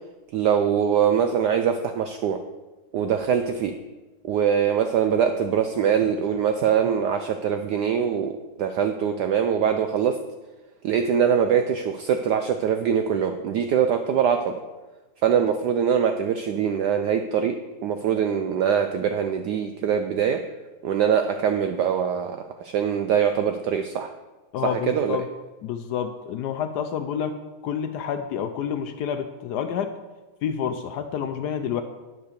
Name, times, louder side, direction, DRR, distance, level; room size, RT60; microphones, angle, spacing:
voice 1, 0.3-2.4 2.9-3.7 4.2-10.2 10.8-14.5 15.2-17.6 17.8-20.4 20.8-24.1 24.6-25.2, right 8 dB, 80° right, 7 dB, 0.9 m, -23 dB
voice 2, 24.5-25.3 25.6-29.9 30.4-31.8, left 8 dB, 90° left, 8 dB, 0.9 m, -29 dB
10.5 x 4.7 x 6.6 m, 1.2 s
omnidirectional pair, 2.3 m